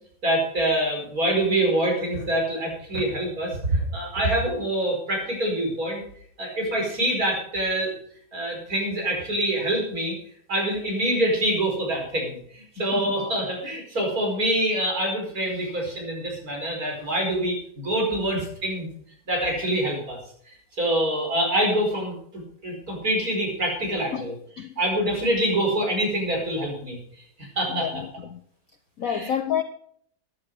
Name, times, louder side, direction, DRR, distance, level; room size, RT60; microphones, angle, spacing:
voice 1, 0.2-6.0 6.4-7.9 8.3-10.2 10.5-18.9 19.3-20.2 20.5-24.4 24.8-27.0 27.6-27.9 29.1-29.3, right 1 dB, 45° right, 0 dB, 5.4 m, -25 dB
voice 2, 12.8-13.1 24.1-24.3 24.6-24.8 27.7-28.4 29.0-29.6, left 9 dB, 60° left, 9 dB, 1.0 m, -29 dB
13.5 x 11.0 x 4.8 m, 0.63 s
omnidirectional pair, 2.2 m